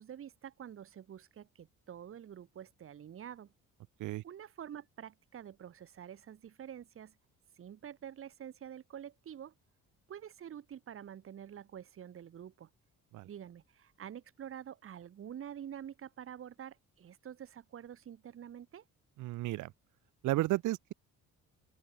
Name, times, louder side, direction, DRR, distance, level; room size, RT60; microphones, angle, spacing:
voice 1, 0.0-3.5 4.2-7.1 7.6-9.5 10.1-12.7 13.2-18.8, right 9 dB, 40° right, 1.0 m, -47 dB
voice 2, 19.2-19.7 20.2-20.9, right 17 dB, 70° right, 0.5 m, -33 dB
open air
cardioid pair, 105°, 32 cm